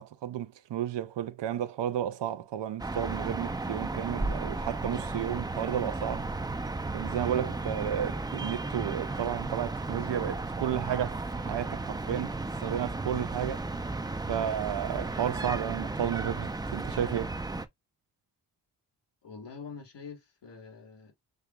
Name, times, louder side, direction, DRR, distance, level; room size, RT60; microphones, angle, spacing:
voice 1, 0.0-6.3 6.9-13.6 14.3-17.3, right 10 dB, 85° right, 0.6 m, -32 dB
sound 1, 2.8-17.7, right 2 dB, 10° right, 0.4 m, -34 dB
voice 2, 19.2-21.1, left 5 dB, 90° left, 1.5 m, -45 dB
6.4 x 2.9 x 2.2 m
cardioid pair, 65°, 41 cm